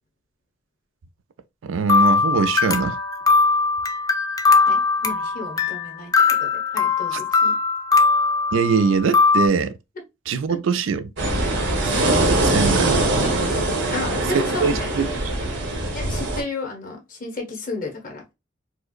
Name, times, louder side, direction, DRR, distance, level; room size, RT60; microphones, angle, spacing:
voice 1, 1.6-3.0 7.1-7.2 8.5-9.8 10.3-11.1 12.4-13.1 14.3-15.1 15.4-15.5, right 5 dB, 80° right, 0.4 m, -22 dB
sound 1, 1.9-9.5, left 4 dB, 20° left, 0.3 m, -20 dB
voice 2, 4.7-7.6 7.9-8.0 10.5-10.6 11.5-11.6 13.9-15.2 15.9-18.3, left 2 dB, 45° left, 1.2 m, -33 dB
sound 2, 11.2-16.4, right 2 dB, 65° right, 0.9 m, -22 dB
4.5 x 2.0 x 2.4 m
head